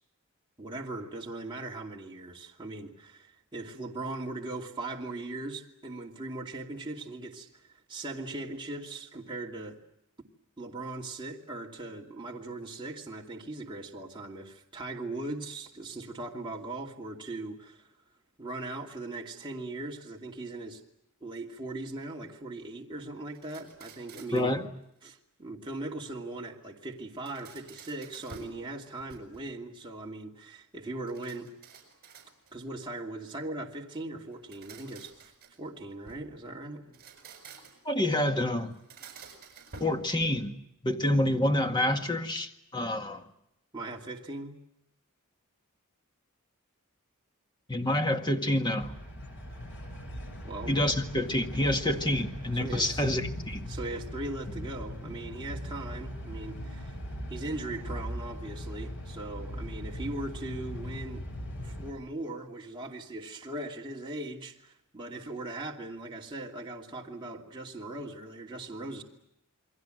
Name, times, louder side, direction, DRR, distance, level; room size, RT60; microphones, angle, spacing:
voice 1, 0.6-9.8 10.6-17.9 18.4-20.8 21.2-24.6 25.0-31.5 32.5-35.3 35.6-37.0 43.7-44.5 50.4-50.8 52.5-53.0 53.7-56.9 57.3-61.2 61.6-69.0, right 2 dB, 20° right, -2 dB, 2.7 m, -39 dB
sound 1, 23.3-24.6 27.0-28.6 29.0-29.6 31.1-32.7 34.3-36.3 36.8-37.9 38.7-40.6, right 4 dB, 45° right, 6.9 m, -51 dB
voice 2, 24.3-24.7 37.9-38.7 39.8-40.6 40.8-43.2 47.7-48.9 50.7-53.7, left 1 dB, 20° left, 5 dB, 1.8 m, -28 dB
sound 2, 48.8-61.9, equal, 60° left, 6.9 m, -40 dB
29.0 x 22.5 x 7.9 m, 0.78 s
head